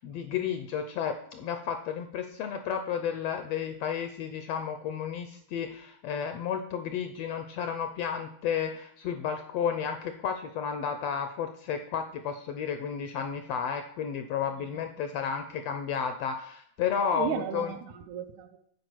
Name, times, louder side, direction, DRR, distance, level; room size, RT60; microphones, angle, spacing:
voice 1, 0.0-17.7, left 7 dB, 75° left, 1.5 m, -32 dB
voice 2, 17.0-18.6, right 9 dB, 75° right, 2.0 m, -35 dB
9.6 x 4.9 x 5.9 m
omnidirectional pair, 3.4 m